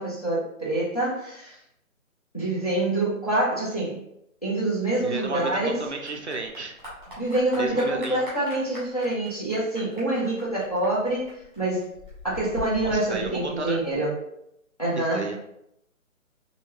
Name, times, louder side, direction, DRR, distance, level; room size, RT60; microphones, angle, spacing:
voice 1, 0.0-1.6 2.3-4.0 4.4-5.8 7.2-11.8 12.2-14.1 14.8-15.2, right 2 dB, 25° left, -8 dB, 0.7 m, -26 dB
Clapping / Applause, 5.0-14.0, left 2 dB, 15° right, 1.2 m, -43 dB
voice 2, 5.0-6.7 7.5-8.2 12.8-13.8 15.0-15.4, right 3 dB, 55° right, 1 dB, 0.5 m, -32 dB
2.9 x 2.7 x 2.9 m, 0.77 s
hypercardioid pair, 175°, 42 cm